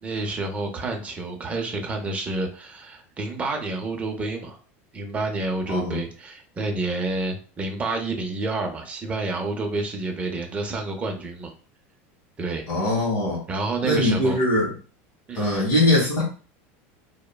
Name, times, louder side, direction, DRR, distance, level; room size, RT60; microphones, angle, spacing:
voice 1, 0.0-4.6 4.9-11.5 12.4-12.6 13.5-14.4 15.3-15.7, right 2 dB, 20° right, 3 dB, 0.5 m, -29 dB
voice 2, 12.7-13.4 13.8-14.7 15.3-16.2, left 1 dB, 45° left, -5 dB, 1.4 m, -21 dB
3.0 x 2.1 x 2.2 m, 0.38 s
supercardioid pair, 140°, 7 cm